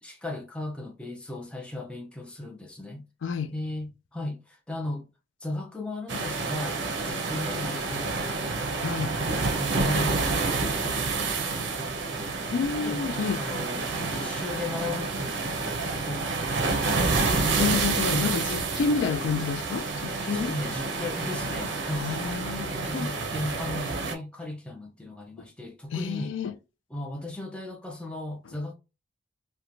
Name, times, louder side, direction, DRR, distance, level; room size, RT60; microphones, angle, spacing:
voice 1, 0.0-3.1 3.5-5.1 5.4-8.7 9.0-13.0 13.4-17.4 18.1-18.4 20.3-22.1 22.6-26.4 26.9-28.7, left 2 dB, 5° left, 0.4 m, -36 dB
voice 2, 3.2-3.5 8.8-9.2 12.5-13.4 13.9-14.1 17.6-20.5 22.0-22.7 22.9-23.1 25.9-26.5, left 5 dB, 80° left, 0.3 m, -29 dB
sound 1, 6.1-24.1, right 3 dB, 70° right, 0.5 m, -29 dB
2.9 x 2.2 x 2.4 m
head